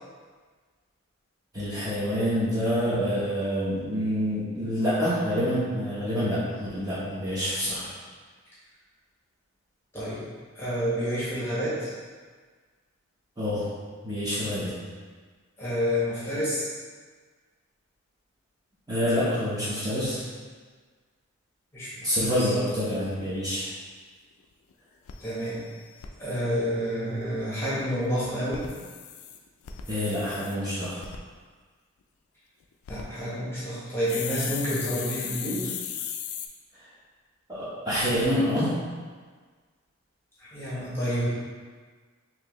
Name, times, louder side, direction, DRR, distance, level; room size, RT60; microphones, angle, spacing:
voice 1, 1.5-7.9 13.4-13.6 14.0-14.7 18.9-20.2 22.0-23.7 29.9-31.0 37.5-38.7, equal, 15° right, -10 dB, 0.9 m, -27 dB
voice 2, 9.9-10.3 10.5-11.9 15.6-16.7 21.7-22.5 25.2-25.6 26.2-28.7 32.9-35.7 40.4-41.3, equal, 10° left, -10 dB, 1.0 m, -29 dB
sound 1, 23.9-24.0 24.4-24.5 24.7-24.8 25.1-26.1 28.4-30.6 31.0-31.2 32.6-33.0 34.1-36.5, left 8 dB, 80° left, 0.4 m, -37 dB
4.5 x 2.8 x 3.0 m, 1.5 s
head